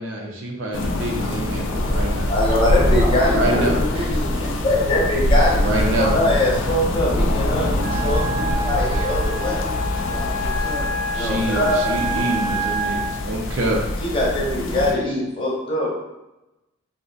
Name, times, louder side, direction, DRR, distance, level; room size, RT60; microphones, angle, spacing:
voice 1, 0.0-2.3 3.3-3.8 5.5-6.2 11.1-13.8, right 1 dB, 65° right, -1 dB, 0.5 m, -25 dB
sound 1, 0.7-14.9, left 1 dB, 70° left, 0.4 m, -23 dB
voice 2, 2.3-3.7 4.6-9.7 11.1-11.8 14.0-15.9, left 1 dB, 25° left, -4 dB, 0.7 m, -22 dB
voice 3, 2.9-4.7 4.9-5.1 9.2-10.9, equal, 25° right, -4 dB, 0.6 m, -31 dB
Wind instrument woodwind instrument, 7.8-13.1, right 2 dB, 85° right, 0.9 m, -28 dB
2.5 x 2.1 x 3.8 m, 0.96 s
head